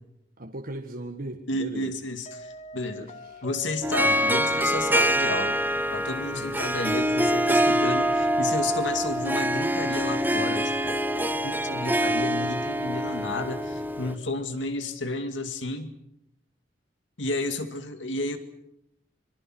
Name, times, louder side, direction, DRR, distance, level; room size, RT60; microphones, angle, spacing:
voice 1, 0.4-1.9 3.0-3.4 6.3-6.6, right 1 dB, 50° right, 3 dB, 1.5 m, -38 dB
voice 2, 1.5-3.1 3.4-5.6 5.9-10.9 11.4-15.9 17.2-18.4, left 2 dB, 80° left, 8 dB, 2.2 m, -32 dB
sound 1, 2.3-15.1, equal, 40° left, 1.2 m, -44 dB
Harp, 3.8-14.1, equal, 10° right, 0.9 m, -25 dB
25.0 x 24.0 x 6.2 m, 0.80 s
head